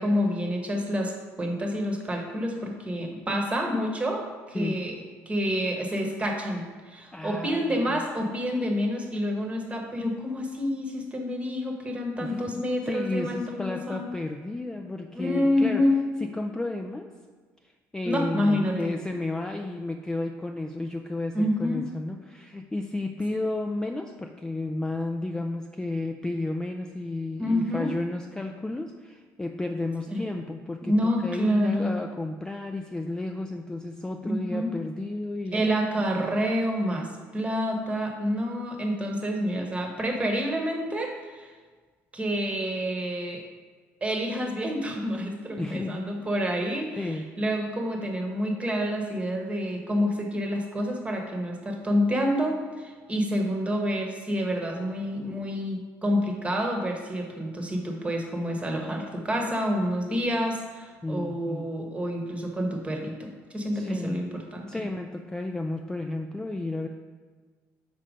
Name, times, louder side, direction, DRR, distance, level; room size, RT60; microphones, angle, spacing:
voice 1, 0.0-4.9 5.3-14.0 15.1-16.0 18.0-18.9 21.3-21.8 27.4-28.0 30.1-30.2 30.9-31.9 34.2-34.7 35.5-41.5 42.1-43.4 44.0-64.8, equal, 20° right, 2 dB, 1.0 m, -28 dB
voice 2, 7.1-8.0 12.2-15.8 16.2-17.1 17.6-35.7 45.5-46.1 47.0-47.3 61.0-61.7 63.7-64.3 64.7-66.9, left 2 dB, 10° left, 4 dB, 0.3 m, -32 dB
5.1 x 4.3 x 5.0 m, 1.4 s
cardioid pair, 105°, 6 cm